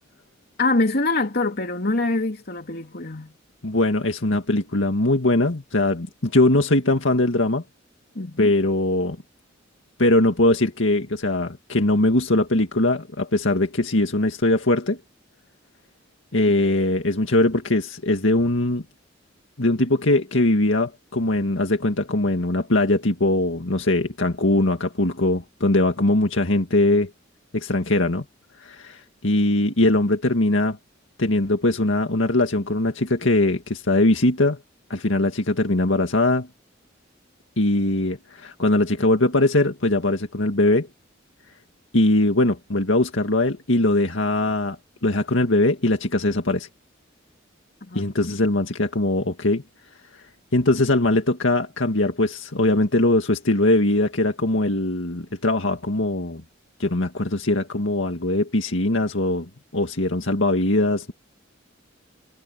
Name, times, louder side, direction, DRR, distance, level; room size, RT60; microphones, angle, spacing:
voice 1, 0.6-3.3 8.1-8.5 47.9-48.4, left 2 dB, 55° left, 2.9 m, -25 dB
voice 2, 3.6-7.6 8.4-9.2 10.0-15.0 16.3-18.8 19.6-27.1 27.5-28.2 28.6-30.8 31.2-34.6 34.9-36.5 37.6-40.9 41.9-44.8 45.0-46.7 47.9-49.6 50.5-56.4 56.8-61.1, left 2 dB, 75° left, 2.1 m, -21 dB
head